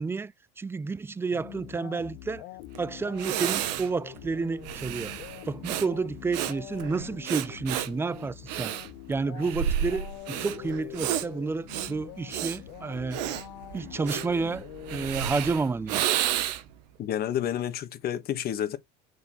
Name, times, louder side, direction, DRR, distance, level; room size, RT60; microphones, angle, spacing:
voice 1, 0.0-2.4 2.8-5.2 5.5-8.7 9.1-13.2 13.7-16.2, right 4 dB, 10° right, 0.3 m, -30 dB
sound 1, 1.3-15.6, left 15 dB, 75° left, 1.0 m, -44 dB
Breathing, 2.7-2.8 3.2-16.8, right 11 dB, 90° right, 0.9 m, -32 dB
voice 2, 17.0-18.8, left 10 dB, 50° left, 1.3 m, -30 dB
6.7 x 4.7 x 3.0 m
supercardioid pair, 110°, 21 cm